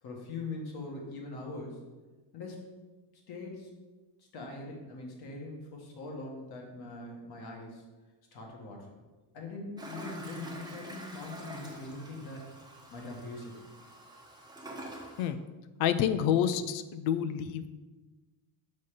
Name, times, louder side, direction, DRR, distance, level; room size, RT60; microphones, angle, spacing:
voice 1, 0.0-1.8 2.3-2.7 3.3-3.7 4.3-7.8 8.3-8.9 9.3-12.5 12.9-13.5, left 2 dB, 55° left, 0 dB, 1.7 m, -42 dB
Toilet flush, 9.8-15.3, right 1 dB, 10° right, 1.0 m, -46 dB
voice 2, 15.8-17.7, left 9 dB, 90° left, 11 dB, 0.6 m, -28 dB
5.6 x 4.2 x 4.9 m, 1.2 s
cardioid pair, 125°, 45 cm